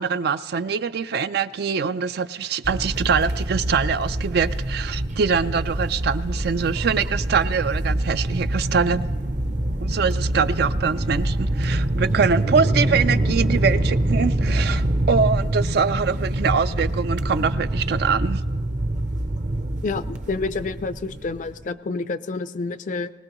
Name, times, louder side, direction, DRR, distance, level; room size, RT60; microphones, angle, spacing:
voice 1, 0.0-9.0 9.8-18.4, right 5 dB, 60° right, 13 dB, 0.4 m, -23 dB
sound 1, 2.6-21.6, right 1 dB, 45° right, 0.7 m, -25 dB
voice 2, 19.8-23.1, left 3 dB, 45° left, 12 dB, 0.4 m, -28 dB
21.0 x 19.0 x 3.1 m, 1.3 s
head